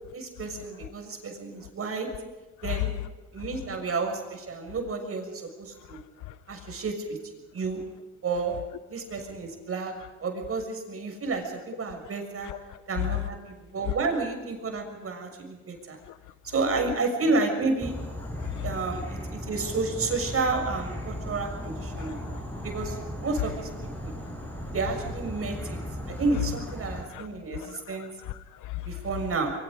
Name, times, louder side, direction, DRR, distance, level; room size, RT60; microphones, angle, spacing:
voice 1, 0.1-2.1 2.6-2.9 3.3-6.0 6.5-7.2 7.5-7.8 8.2-8.6 8.9-9.9 10.2-12.5 12.9-13.4 13.7-16.0 16.5-17.9 18.6-19.2 19.5-22.2 22.6-23.7 24.0-24.1 24.7-25.8 26.1-28.1 28.8-29.5, right 3 dB, 50° right, 6.5 m, -30 dB
voice 2, 12.5-12.8 16.1-16.2 18.4-18.7 22.0-22.4 27.1-27.3 27.5-28.9, left 17 dB, 85° left, 0.9 m, -37 dB
Insect / Frog, 17.8-27.0, left 1 dB, 5° left, 7.0 m, -36 dB
25.5 x 23.5 x 5.2 m
cardioid pair, 90°, 30 cm